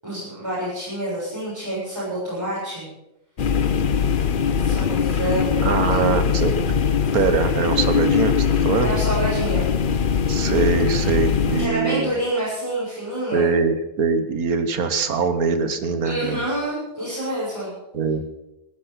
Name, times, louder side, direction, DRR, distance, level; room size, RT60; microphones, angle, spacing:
voice 1, 0.0-2.9 4.5-6.0 8.8-9.7 11.6-13.5 16.0-17.7, right 1 dB, 15° right, -11 dB, 7.8 m, -27 dB
sound 1, 3.4-11.7, left 7 dB, 50° left, 0.6 m, -21 dB
voice 2, 5.6-6.6 7.1-8.9 10.3-12.1 13.3-16.5 17.9-18.2, right 5 dB, 60° right, 9 dB, 1.7 m, -22 dB
14.5 x 14.0 x 5.9 m, 0.94 s
omnidirectional pair, 1.8 m